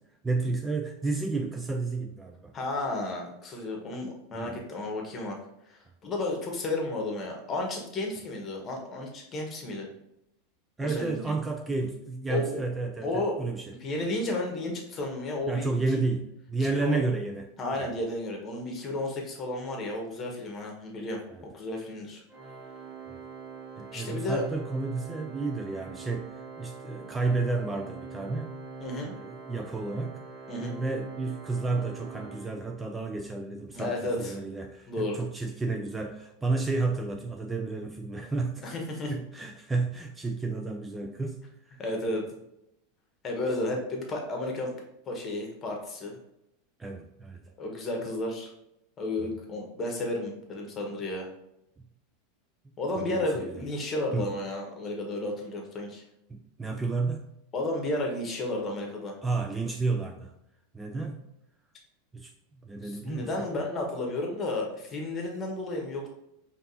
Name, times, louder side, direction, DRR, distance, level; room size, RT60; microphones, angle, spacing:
voice 1, 0.2-2.5 4.3-4.6 10.8-13.7 15.5-17.5 17.8-17.9 21.3-21.4 23.1-23.2 23.8-26.3 26.6-28.6 29.0-30.2 30.6-38.6 39.1-41.8 43.7-43.8 46.8-47.4 53.0-53.2 54.1-54.3 56.3-57.3 59.2-60.3 60.7-61.3 62.1-62.3 62.6-63.3, right 3 dB, 15° right, 3 dB, 0.4 m, -31 dB
voice 2, 2.5-5.4 5.6-9.9 10.8-11.3 12.3-12.6 13.0-13.4 13.8-16.0 16.6-17.0 17.6-22.2 23.9-24.4 28.8-29.1 30.5-30.8 33.7-34.4 34.9-35.2 38.6-39.1 41.8-42.2 43.2-44.7 45.0-46.2 47.6-48.5 49.0-51.3 52.8-56.0 57.5-59.2 62.8-66.1, left 2 dB, 30° left, 1 dB, 1.2 m, -32 dB
Organ, 22.3-33.1, right 4 dB, 50° right, 1.1 m, -44 dB
5.1 x 2.8 x 2.7 m, 0.82 s
hypercardioid pair, 90°, 0 cm